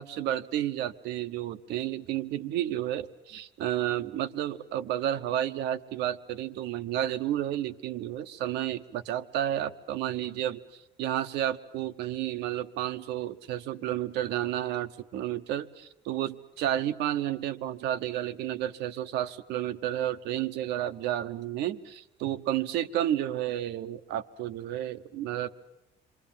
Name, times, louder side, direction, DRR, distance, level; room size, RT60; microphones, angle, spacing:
voice 1, 0.0-25.5, right 12 dB, 85° right, 11 dB, 1.1 m, -31 dB
27.5 x 24.0 x 7.4 m, 0.90 s
cardioid pair, 110°, 17 cm